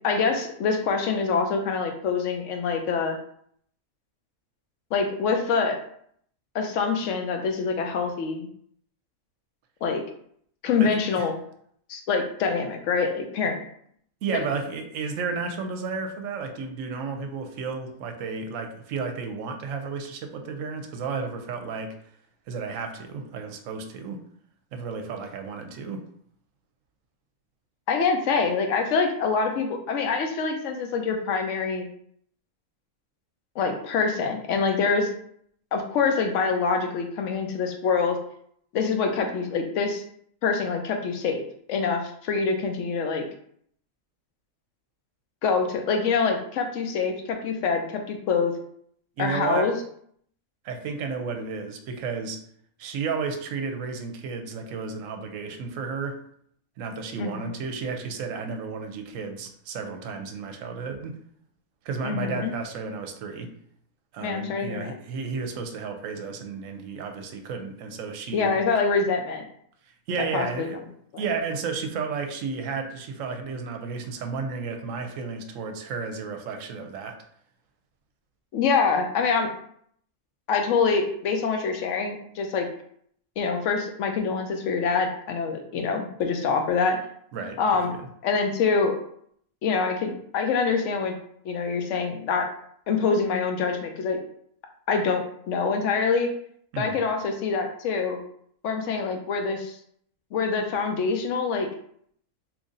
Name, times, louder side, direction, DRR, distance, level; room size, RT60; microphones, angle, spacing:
voice 1, 0.0-3.2 4.9-5.8 6.5-8.5 9.8-10.0 10.6-11.4 11.9-13.6 14.3-14.5 27.9-31.9 33.6-35.1 35.7-38.2 38.7-40.0 40.4-41.4 41.7-43.3 45.4-48.5 49.2-49.7 57.2-57.5 62.0-62.5 64.2-64.9 68.3-69.4 70.3-70.7 78.5-79.5 80.5-82.7 83.4-87.0 87.6-87.9 88.2-89.0 89.6-91.1 91.4-92.5 92.9-94.2 94.9-96.3 96.8-98.2 98.6-99.7 100.3-101.7, left 5 dB, 65° left, 4 dB, 0.9 m, -25 dB
voice 2, 10.8-11.3 14.2-21.9 22.5-24.3 24.7-26.1 49.2-49.8 50.6-52.4 52.8-56.2 56.8-61.2 61.8-63.5 64.1-68.6 70.1-70.8 71.2-77.2 87.3-87.6 96.7-97.0, right 5 dB, 70° right, 5 dB, 0.9 m, -32 dB
3.0 x 2.6 x 3.7 m, 0.65 s
omnidirectional pair, 1.5 m